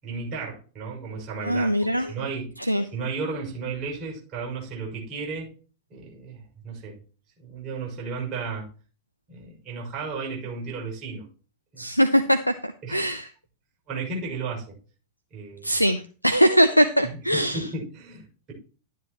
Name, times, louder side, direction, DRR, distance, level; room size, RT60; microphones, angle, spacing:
voice 1, 0.0-1.7 2.0-2.6 2.9-5.5 5.9-7.0 7.4-8.7 9.3-11.3 11.7-11.8 12.8-13.2 13.9-14.8 15.3-15.7 17.0-18.5, right 4 dB, 35° right, 6.1 m, -34 dB
voice 2, 1.4-2.1 2.7-2.8 11.8-13.3 15.6-17.6, equal, 90° left, 0.5 m, -21 dB
12.0 x 9.4 x 3.0 m
figure-of-eight pair, 90°, 0 cm